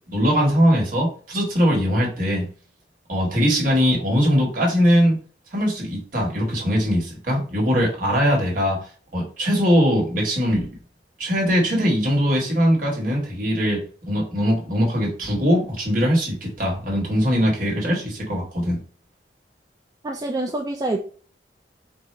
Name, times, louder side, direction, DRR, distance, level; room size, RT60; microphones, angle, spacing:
voice 1, 0.1-2.4 3.1-5.2 5.5-8.8 9.1-10.7 11.2-13.8 14.1-18.8, equal, 50° right, -2 dB, 1.7 m, -21 dB
voice 2, 20.0-21.0, right 2 dB, 20° right, 2 dB, 0.4 m, -26 dB
4.7 x 2.5 x 3.3 m, 0.41 s
head